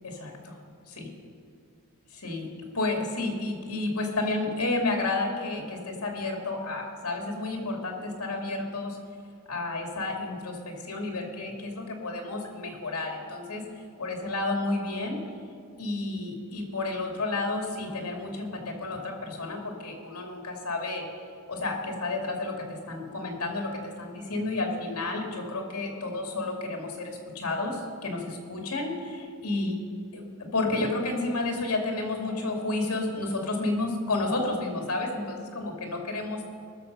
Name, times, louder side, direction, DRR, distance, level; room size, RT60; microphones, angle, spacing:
voice 1, 0.0-0.6 0.9-1.1 2.1-2.5 2.7-9.0 9.5-13.6 14.0-15.2 15.8-21.0 21.5-29.8 30.1-36.5, left 2 dB, 75° left, 1 dB, 2.4 m, -31 dB
20.0 x 6.8 x 5.4 m, 2.4 s
head